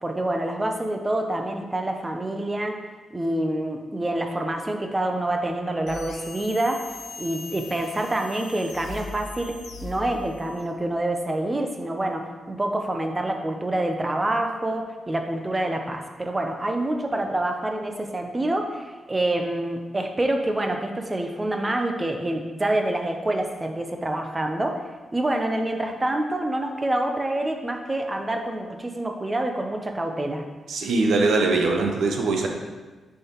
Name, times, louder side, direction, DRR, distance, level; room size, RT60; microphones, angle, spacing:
voice 1, 0.0-2.8 3.1-6.8 7.2-24.8 25.1-30.4, right 1 dB, 15° right, 4 dB, 0.5 m, -27 dB
sound 1, 5.9-10.7, left 4 dB, 75° left, 0.5 m, -40 dB
voice 2, 30.7-32.5, right 3 dB, 75° right, 3 dB, 0.8 m, -22 dB
6.6 x 5.6 x 3.0 m, 1.3 s
wide cardioid pair, 180°, 0 cm